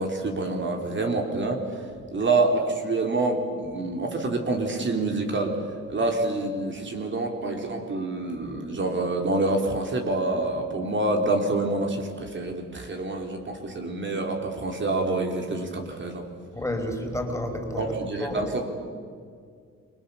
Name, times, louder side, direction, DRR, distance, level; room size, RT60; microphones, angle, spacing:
voice 1, 0.0-1.6 2.1-5.6 5.9-16.2 17.8-18.7, right 2 dB, 40° right, 3 dB, 3.9 m, -27 dB
voice 2, 16.5-17.9 18.2-18.4, left 1 dB, 10° left, 4 dB, 5.1 m, -30 dB
29.0 x 24.0 x 7.2 m, 2.2 s
cardioid pair, 90°, 30 cm